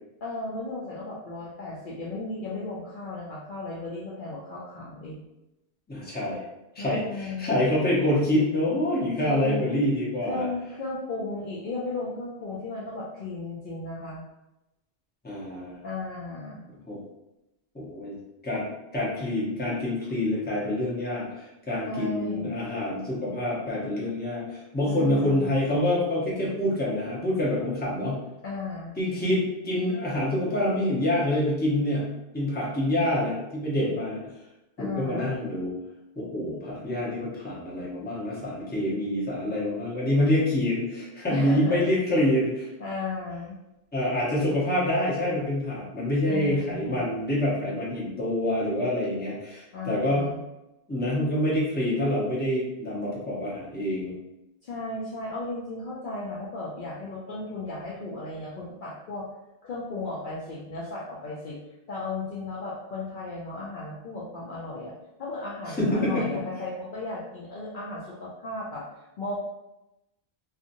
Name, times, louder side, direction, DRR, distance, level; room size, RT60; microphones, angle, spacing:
voice 1, 0.2-5.2 6.8-7.6 9.2-9.8 10.2-14.2 15.8-16.6 21.8-22.6 24.9-25.8 28.4-29.0 34.8-35.3 41.3-41.9 42.8-43.6 46.2-47.1 49.7-50.4 54.6-59.3 59.6-61.6 61.9-64.9 65.2-68.9 69.2-69.4, left 2 dB, 60° left, -5 dB, 0.6 m, -35 dB
voice 2, 5.9-6.4 6.7-10.5 15.2-15.7 16.9-17.0 17.7-18.2 18.4-18.6 18.9-28.2 29.0-32.1 32.3-34.2 34.8-35.7 36.2-42.7 43.9-50.3 50.9-54.1 65.8-66.2, left 1 dB, 10° left, -6 dB, 0.7 m, -26 dB
2.8 x 2.4 x 2.6 m, 0.93 s
omnidirectional pair, 1.1 m